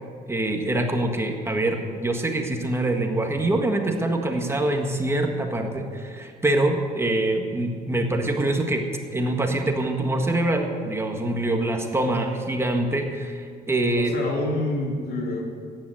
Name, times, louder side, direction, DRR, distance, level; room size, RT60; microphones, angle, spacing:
voice 1, 0.3-8.8 9.1-14.1, right 1 dB, 15° right, 3 dB, 1.7 m, -24 dB
voice 2, 13.9-15.5, left 2 dB, 70° left, 0 dB, 3.1 m, -27 dB
14.0 x 10.5 x 7.9 m, 2.2 s
cardioid pair, 110°, 17 cm